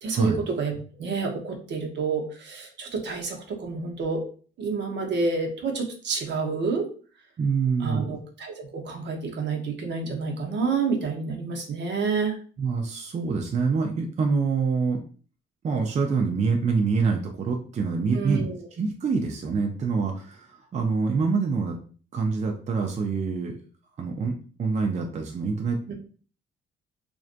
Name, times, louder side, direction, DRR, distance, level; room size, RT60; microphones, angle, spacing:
voice 1, 0.0-4.2 4.6-6.9 7.8-12.4 18.1-18.6 25.9-26.0, right 4 dB, 65° right, 2 dB, 0.8 m, -29 dB
voice 2, 7.4-8.1 12.6-15.0 15.6-18.5 18.8-21.8 22.1-23.6 24.0-25.8, right 4 dB, 35° right, 2 dB, 0.4 m, -26 dB
2.5 x 2.2 x 2.5 m, 0.40 s
cardioid pair, 90°, 20 cm